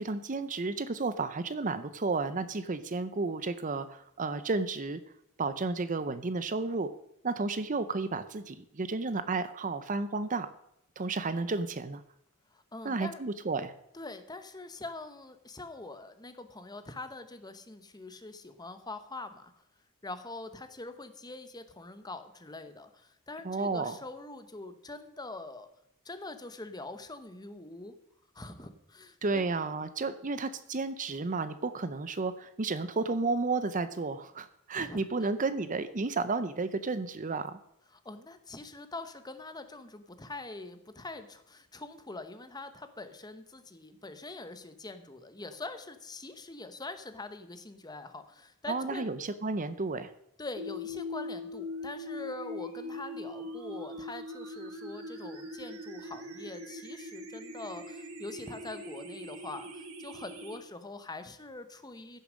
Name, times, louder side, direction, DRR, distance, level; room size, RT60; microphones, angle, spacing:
voice 1, 0.0-5.0 5.4-6.9 7.2-10.5 11.0-12.0 12.8-13.7 23.4-24.0 29.2-37.6 48.7-50.1, right 3 dB, 35° right, 12 dB, 0.6 m, -32 dB
voice 2, 12.5-13.2 13.9-19.5 20.0-25.7 26.0-27.9 28.3-29.5 34.8-35.3 37.9-49.1 50.4-62.2, left 2 dB, 20° left, 9 dB, 1.0 m, -44 dB
sound 1, 50.6-60.6, left 1 dB, 85° right, 2.4 m, -41 dB
15.0 x 7.0 x 6.3 m, 0.80 s
head